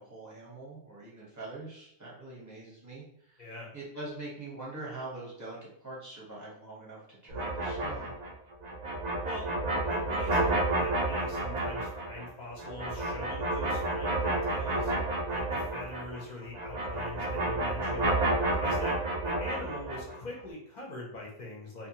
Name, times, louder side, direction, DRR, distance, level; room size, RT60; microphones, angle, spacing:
voice 1, 0.0-3.4 3.7-8.1, right 2 dB, 15° right, -6 dB, 0.8 m, -43 dB
voice 2, 3.4-3.7 9.2-9.5 9.9-14.9 15.3-18.1 18.6-19.0 19.2-21.9, left 1 dB, 50° left, -2 dB, 0.5 m, -43 dB
sound 1, 7.3-16.2 16.5-20.2, right 2 dB, 75° right, 0.4 m, -30 dB
2.7 x 2.1 x 2.8 m, 0.68 s
omnidirectional pair, 1.4 m